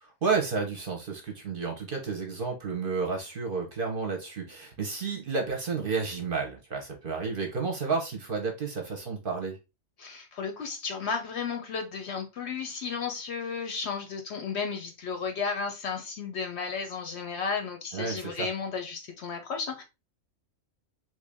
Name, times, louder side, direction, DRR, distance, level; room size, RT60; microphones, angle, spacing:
voice 1, 0.0-9.6 17.9-18.5, right 4 dB, 50° right, 0.8 m, -31 dB
voice 2, 10.0-19.8, left 5 dB, 60° left, 0.8 m, -33 dB
3.1 x 2.7 x 3.3 m
omnidirectional pair, 1.4 m